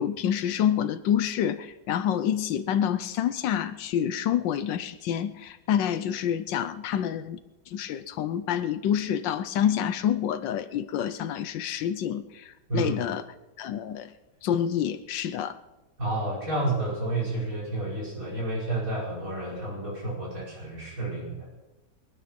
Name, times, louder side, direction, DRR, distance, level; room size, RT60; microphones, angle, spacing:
voice 1, 0.0-7.4 7.7-13.2 13.6-14.1 14.4-15.6, left 9 dB, 90° left, 11 dB, 1.5 m, -27 dB
voice 2, 16.0-21.5, right 2 dB, 50° right, -5 dB, 5.6 m, -30 dB
23.0 x 10.0 x 6.1 m, 1.0 s
omnidirectional pair, 1.9 m